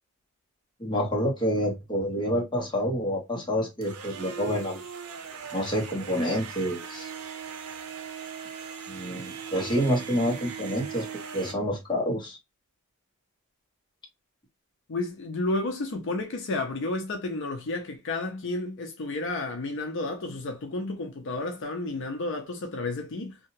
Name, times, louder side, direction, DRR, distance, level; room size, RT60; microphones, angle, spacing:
voice 1, 0.8-4.8 5.5-7.1 8.9-11.1 11.3-12.4, equal, 20° left, 0.9 m, -28 dB
sound 1, 3.8-11.5, right 7 dB, 85° right, 0.6 m, -39 dB
voice 2, 14.9-23.4, left 2 dB, 60° left, 0.5 m, -31 dB
2.8 x 2.3 x 2.8 m
head